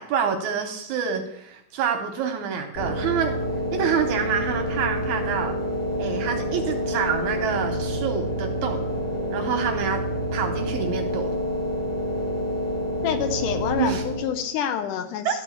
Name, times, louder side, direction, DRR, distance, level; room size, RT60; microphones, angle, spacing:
voice 1, 0.0-3.3 3.7-5.6 6.0-8.8 9.3-10.0 10.3-11.3 13.8-14.0 15.3-15.4, right 7 dB, 75° right, 5 dB, 1.8 m, -27 dB
sound 1, 2.8-14.5, equal, 60° left, 4.1 m, -28 dB
voice 2, 13.0-15.4, left 9 dB, 75° left, 9 dB, 2.0 m, -27 dB
12.5 x 4.4 x 7.1 m, 0.80 s
omnidirectional pair, 4.1 m